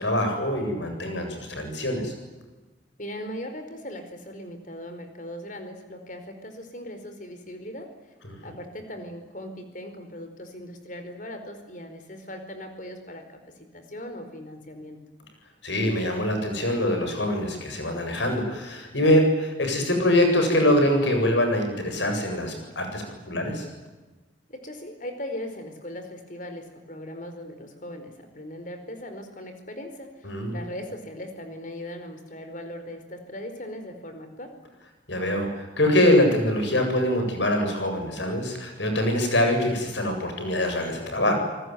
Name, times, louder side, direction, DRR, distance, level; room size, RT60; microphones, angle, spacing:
voice 1, 0.0-2.1 15.6-23.6 30.2-30.6 35.1-41.3, left 1 dB, 75° left, 5 dB, 7.7 m, -24 dB
voice 2, 3.0-7.9 8.4-13.4 13.7-15.0 24.5-34.5, left 1 dB, 45° left, 7 dB, 4.7 m, -39 dB
28.5 x 20.0 x 9.5 m, 1.2 s
head